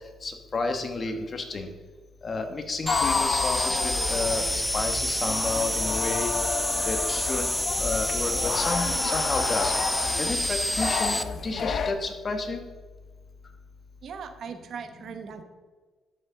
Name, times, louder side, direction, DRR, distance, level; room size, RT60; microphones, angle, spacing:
voice 1, 0.2-1.7 2.2-6.3 6.8-7.5 7.8-9.7 10.2-12.6, left 3 dB, 40° left, 6 dB, 1.3 m, -31 dB
sound 1, 2.9-11.9, left 6 dB, 55° left, 0.7 m, -31 dB
sound 2, 2.9-11.2, equal, ahead, 0.5 m, -28 dB
voice 2, 14.0-15.4, right 6 dB, 65° right, 8 dB, 1.0 m, -39 dB
12.0 x 6.9 x 3.8 m, 1.4 s
cardioid pair, 90°, 0 cm